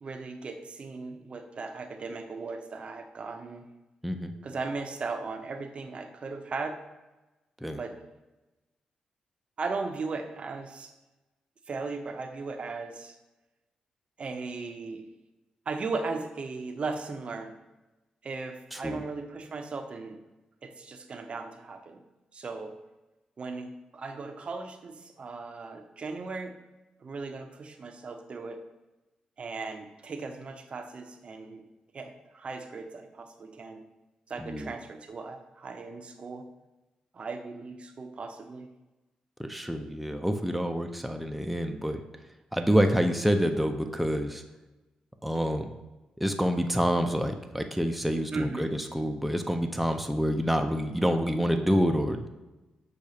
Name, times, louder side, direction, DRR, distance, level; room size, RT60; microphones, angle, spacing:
voice 1, 0.0-3.7 4.4-6.8 7.8-7.9 9.6-10.9 11.7-13.1 14.2-15.1 15.7-17.5 18.2-20.2 20.6-22.0 22.3-22.7 23.4-26.5 27.0-28.6 29.4-31.6 31.9-33.8 34.3-36.4 37.1-38.7 48.3-48.7, right 4 dB, 50° right, 5 dB, 0.6 m, -37 dB
voice 2, 18.7-19.0 34.4-34.7 39.4-42.0 42.5-44.4 45.2-45.7 46.2-52.3, equal, ahead, 5 dB, 0.4 m, -27 dB
6.3 x 2.4 x 2.8 m, 1.1 s
supercardioid pair, 55°, 2 cm